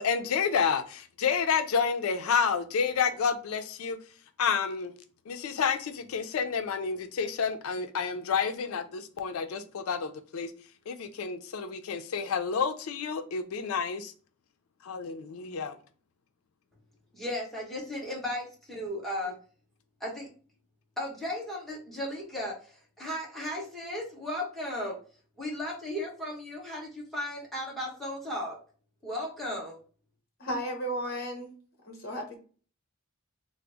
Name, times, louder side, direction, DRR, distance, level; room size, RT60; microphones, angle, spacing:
voice 1, 0.0-4.0 4.4-4.9 5.3-10.5 10.9-14.1 14.8-15.8, left 6 dB, 90° left, 0.4 m, -29 dB
voice 2, 17.1-19.3 20.0-20.3 21.0-22.5 23.0-25.0 25.4-28.6 29.0-29.8, left 1 dB, ahead, 1.1 m, -35 dB
voice 3, 30.4-31.5 31.8-32.4, equal, 45° left, 1.1 m, -34 dB
3.8 x 2.0 x 3.4 m
head